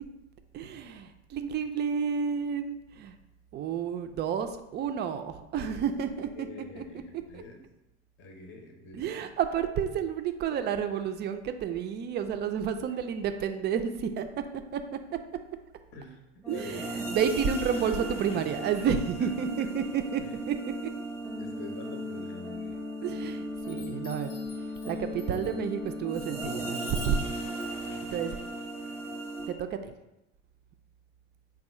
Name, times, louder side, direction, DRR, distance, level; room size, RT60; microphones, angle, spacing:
voice 1, 0.5-3.1 3.5-6.5 6.8-6.9 7.3-7.4 8.9-14.3 14.5-14.8 16.5-20.2 20.5-20.6 20.8-20.9 23.0-24.3 24.8-27.2 28.1-28.4 29.5-29.9, right 7 dB, 35° right, 8 dB, 0.4 m, -30 dB
voice 2, 6.2-7.6 8.2-9.1 12.9-13.0 15.9-16.2 16.5-17.0 17.8-18.0 19.2-19.3 19.6-19.7 20.2-20.4 21.4-22.8 28.8-29.1 29.8-29.9, left 3 dB, 40° left, 3 dB, 0.7 m, -46 dB
sound 1, 16.4-29.5, right 1 dB, 5° left, 0.8 m, -37 dB
Chime, 22.7-23.2 23.6-29.4, left 6 dB, 80° left, 0.6 m, -52 dB
3.6 x 2.3 x 4.3 m, 0.91 s
hypercardioid pair, 90°, 31 cm